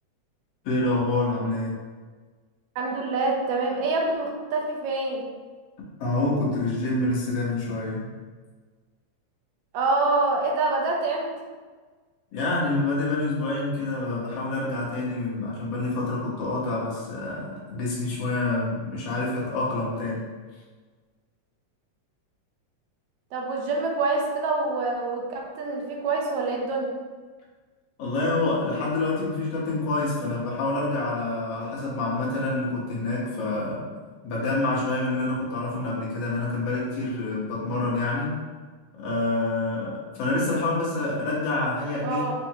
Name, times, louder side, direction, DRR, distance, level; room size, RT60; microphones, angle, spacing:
voice 1, 0.6-1.8 6.0-8.1 12.3-20.3 28.0-33.9 34.2-38.3 39.0-42.2, left 2 dB, 60° left, -6 dB, 2.0 m, -27 dB
voice 2, 2.8-5.2 9.7-11.3 23.3-26.9 42.0-42.4, right 3 dB, 75° right, 0 dB, 2.0 m, -26 dB
5.6 x 3.4 x 2.8 m, 1.4 s
omnidirectional pair, 3.4 m